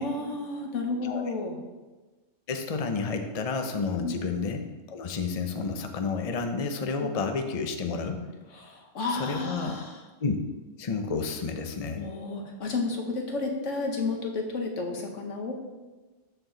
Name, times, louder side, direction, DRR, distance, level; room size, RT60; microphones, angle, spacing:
voice 1, 0.0-1.6 4.0-4.2 7.0-7.1 8.6-9.9 11.9-15.5, left 3 dB, 90° left, 2 dB, 1.5 m, -31 dB
voice 2, 2.5-8.2 9.1-9.8 10.2-10.4 10.8-12.0, left 4 dB, 35° left, 6 dB, 0.7 m, -30 dB
13.0 x 4.5 x 3.9 m, 1.2 s
omnidirectional pair, 1.2 m